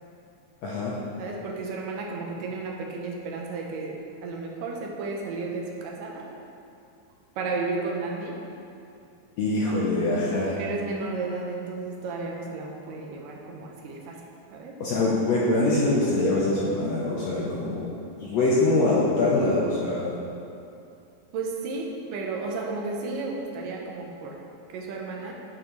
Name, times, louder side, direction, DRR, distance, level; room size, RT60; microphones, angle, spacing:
voice 1, 0.6-1.0 9.4-10.5 14.8-17.8 18.2-20.2, left 2 dB, 70° left, -6 dB, 1.7 m, -24 dB
voice 2, 1.2-6.3 7.4-8.4 10.6-14.2 14.5-14.8 21.3-24.4 24.7-25.3, right 3 dB, 75° right, 0 dB, 2.3 m, -33 dB
11.0 x 6.3 x 3.2 m, 2.7 s
omnidirectional pair, 4.0 m